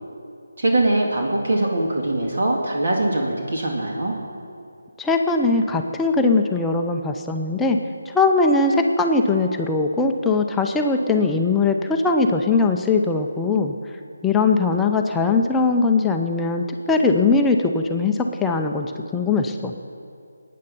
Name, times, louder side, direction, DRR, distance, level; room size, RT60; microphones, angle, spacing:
voice 1, 0.6-4.1, right 2 dB, 55° right, -1 dB, 2.1 m, -22 dB
voice 2, 5.0-7.8 8.1-13.8 14.2-19.7, left 3 dB, 5° left, 2 dB, 0.6 m, -20 dB
19.5 x 9.4 x 5.4 m, 2.4 s
figure-of-eight pair, 155°, 0 cm